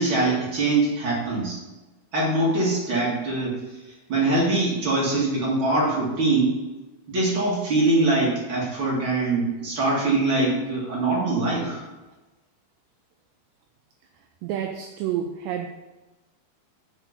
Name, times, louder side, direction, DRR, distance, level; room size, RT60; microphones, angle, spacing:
voice 1, 0.0-1.6 2.1-3.5 4.1-6.5 7.1-11.8, right 2 dB, 50° right, -5 dB, 1.5 m, -23 dB
voice 2, 14.4-15.7, right 10 dB, 85° right, 4 dB, 2.5 m, -29 dB
7.7 x 5.8 x 6.8 m, 1.1 s
omnidirectional pair, 5.7 m